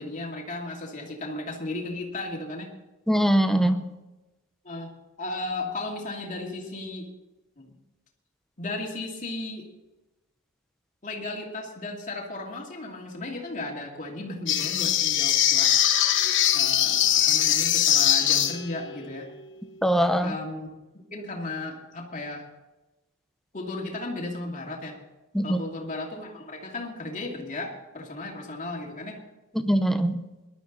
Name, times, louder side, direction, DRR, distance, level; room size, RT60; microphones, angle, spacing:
voice 1, 0.0-2.7 4.6-7.1 7.6-7.7 8.6-9.7 11.0-15.7 16.5-19.3 20.2-20.7 21.1-22.5 23.5-25.0 25.4-29.2, left 2 dB, 35° left, 2.7 m, -35 dB
voice 2, 3.1-3.8 19.8-20.3 25.3-25.6 29.6-30.2, equal, ahead, 0.8 m, -22 dB
sound 1, 14.5-18.8, left 11 dB, 55° left, 1.1 m, -22 dB
19.5 x 12.0 x 4.1 m
head